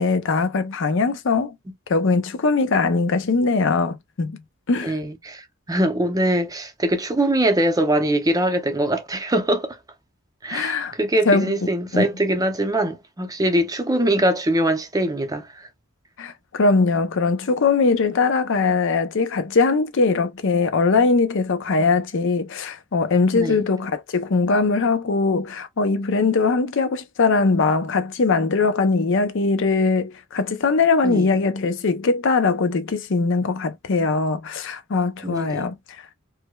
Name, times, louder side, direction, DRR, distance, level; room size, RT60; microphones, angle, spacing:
voice 1, 0.0-1.6 1.9-4.4 4.7-4.9 10.5-10.9 11.3-11.5 11.9-12.0 16.2-36.0, left 4 dB, 65° left, 0.6 m, -21 dB
voice 2, 4.8-9.8 10.4-15.7 23.3-23.6 31.0-31.3 35.2-35.6, right 1 dB, 20° right, 0.6 m, -22 dB
4.7 x 2.1 x 2.2 m
head